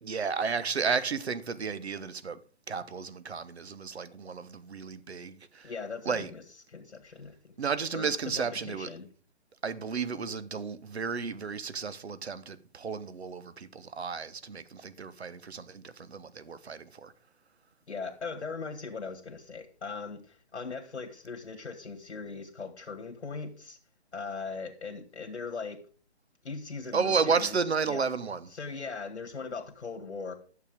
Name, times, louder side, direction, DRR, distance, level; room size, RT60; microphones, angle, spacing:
voice 1, 0.0-2.4 2.7-5.7 6.1-6.3 7.6-8.9 9.6-17.1 26.9-28.4, right 5 dB, 70° right, 1.1 m, -32 dB
voice 2, 5.6-6.4 6.7-7.5 7.9-9.1 17.9-23.8 24.1-25.8 26.4-28.1 28.5-30.3, left 4 dB, 85° left, 2.0 m, -39 dB
11.5 x 7.1 x 5.2 m
hypercardioid pair, 160°, 34 cm